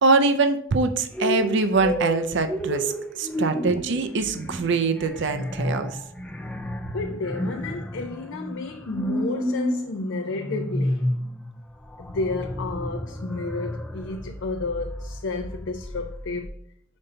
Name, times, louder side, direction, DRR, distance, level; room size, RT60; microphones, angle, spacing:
voice 1, 0.0-6.0, right 3 dB, 60° right, 0.5 m, -23 dB
sound 1, 1.1-16.5, equal, 5° left, 0.4 m, -31 dB
voice 2, 6.9-11.1 12.0-16.6, left 3 dB, 60° left, 0.5 m, -31 dB
5.3 x 3.9 x 5.5 m
head